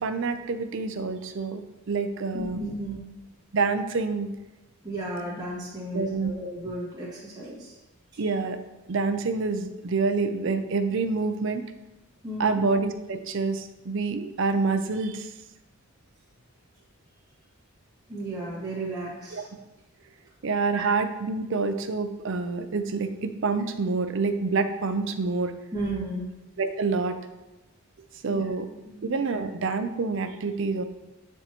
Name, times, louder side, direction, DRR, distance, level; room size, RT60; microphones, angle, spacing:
voice 1, 0.0-2.6 3.5-4.3 5.9-6.3 8.2-8.6 8.9-11.6 12.4-15.3 19.3-19.5 20.4-25.5 26.6-27.2 28.2-28.7 29.0-30.8, right 4 dB, 55° right, 10 dB, 0.5 m, -27 dB
voice 2, 2.3-3.0 4.8-7.8 8.1-8.3 12.2-12.6 18.1-19.5 20.7-20.9 25.7-26.3 28.3-28.5 28.9-29.0, right 1 dB, 20° right, -8 dB, 2.0 m, -34 dB
9.1 x 4.5 x 3.0 m, 1.0 s
head